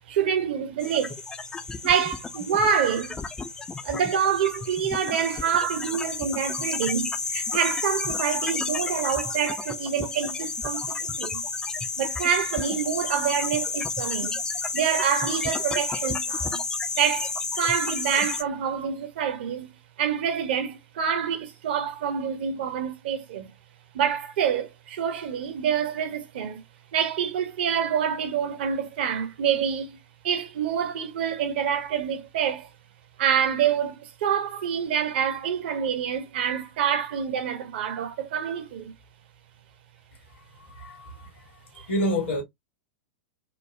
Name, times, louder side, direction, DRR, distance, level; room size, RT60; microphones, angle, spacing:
voice 1, 0.1-1.2 1.8-3.2 3.8-11.4 12.0-14.4 14.7-16.6 17.0-19.7 20.0-23.5 23.9-26.6 26.9-30.0 30.2-32.7 33.2-38.9 41.8-41.9, right 8 dB, 55° right, 0.7 m, -27 dB
sound 1, 0.8-18.4, left 4 dB, 10° left, 0.3 m, -31 dB
voice 2, 40.3-41.5 41.7-42.4, equal, 65° left, 1.2 m, -29 dB
3.1 x 2.0 x 2.4 m
figure-of-eight pair, 95°, 7 cm